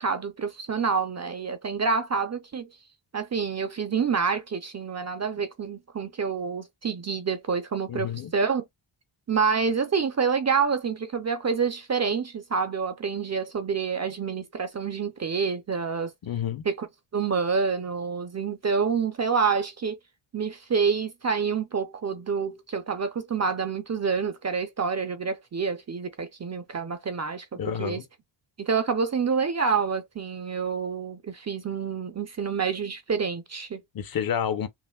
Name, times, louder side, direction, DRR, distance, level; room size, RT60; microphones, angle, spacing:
voice 1, 0.0-2.7 3.1-8.6 9.3-16.1 16.7-16.9 17.1-20.0 20.3-28.0 28.6-33.8, right 5 dB, 35° right, 0.5 m, -27 dB
voice 2, 7.9-8.3 16.2-16.6 27.6-28.0 33.9-34.7, left 8 dB, 45° left, 0.6 m, -29 dB
5.7 x 2.4 x 2.2 m
wide cardioid pair, 170°, 49 cm